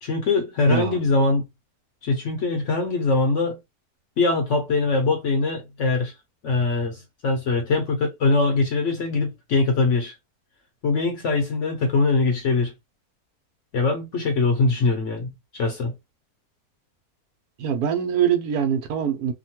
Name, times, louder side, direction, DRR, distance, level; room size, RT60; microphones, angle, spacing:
voice 1, 0.0-1.5 2.0-3.6 4.2-6.1 6.4-10.1 10.8-12.7 13.7-15.9, left 3 dB, 60° left, 0.9 m, -22 dB
voice 2, 0.7-1.0 17.6-19.3, right 8 dB, 80° right, 1.2 m, -23 dB
2.9 x 2.2 x 2.8 m
omnidirectional pair, 1.6 m